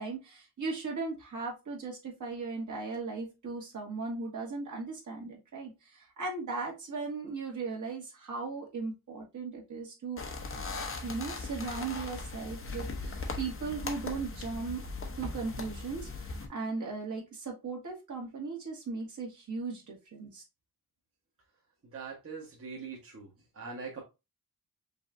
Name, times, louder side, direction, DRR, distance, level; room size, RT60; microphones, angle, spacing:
voice 1, 0.0-10.2 11.0-14.9 15.2-20.4, right 4 dB, 50° right, 0 dB, 1.7 m, -37 dB
sound 1, 10.2-16.5, left 3 dB, 35° left, 0.7 m, -39 dB
voice 2, 21.9-23.3 23.5-24.0, right 5 dB, 35° right, -4 dB, 1.2 m, -42 dB
5.3 x 3.2 x 2.5 m, 0.25 s
wide cardioid pair, 165°, 37 cm